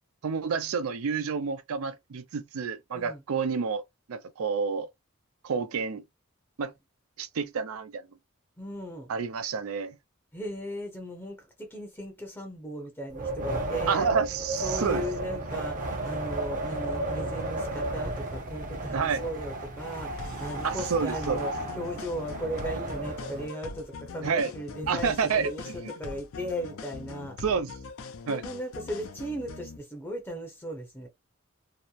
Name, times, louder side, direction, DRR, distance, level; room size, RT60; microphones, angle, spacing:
voice 1, 0.2-3.8 4.1-4.9 5.4-6.0 6.6-6.7 7.2-8.0 9.1-10.0 13.9-15.0 18.9-19.2 20.6-21.5 24.2-24.5 24.9-25.5 27.4-27.7 28.3-28.4, right 5 dB, 80° right, 0.4 m, -29 dB
voice 2, 8.6-9.1 10.3-14.1 14.6-27.4 28.3-31.1, equal, 10° left, 0.6 m, -37 dB
Wind, 13.1-23.5, right 1 dB, 40° right, 0.7 m, -33 dB
sound 1, 20.2-29.8, left 4 dB, 70° left, 0.5 m, -42 dB
2.8 x 2.0 x 2.3 m
head